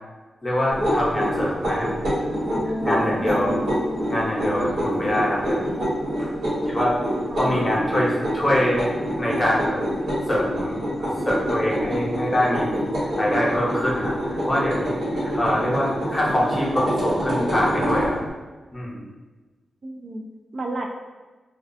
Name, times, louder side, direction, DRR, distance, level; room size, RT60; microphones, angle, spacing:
voice 1, 0.4-1.9 2.6-3.6 4.1-5.8 6.2-7.0 7.4-8.8 9.2-9.8 10.3-14.1 14.5-18.2 18.7-19.1, left 1 dB, 25° left, -4 dB, 0.7 m, -24 dB
sound 1, 0.7-18.1, equal, 90° right, 1.2 m, -26 dB
sound 2, 2.5-8.8, left 1 dB, 20° right, 0.8 m, -37 dB
voice 2, 3.2-3.9 7.3-7.7 19.8-20.2 20.5-20.9, right 2 dB, 55° right, 3 dB, 0.3 m, -33 dB
2.3 x 2.2 x 2.5 m, 1.3 s
cardioid pair, 80°, 0 cm